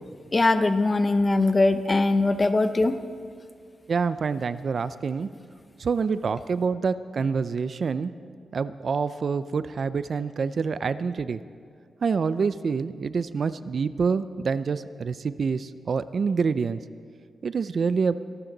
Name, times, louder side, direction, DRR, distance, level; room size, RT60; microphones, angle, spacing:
voice 1, 0.3-3.0, left 2 dB, 25° left, 10 dB, 0.7 m, -21 dB
voice 2, 3.9-5.3 5.8-8.1 8.5-11.4 12.0-16.8 17.4-18.1, right 5 dB, 50° right, 14 dB, 0.4 m, -26 dB
23.5 x 12.5 x 3.9 m, 2.2 s
wide cardioid pair, 135°, 0 cm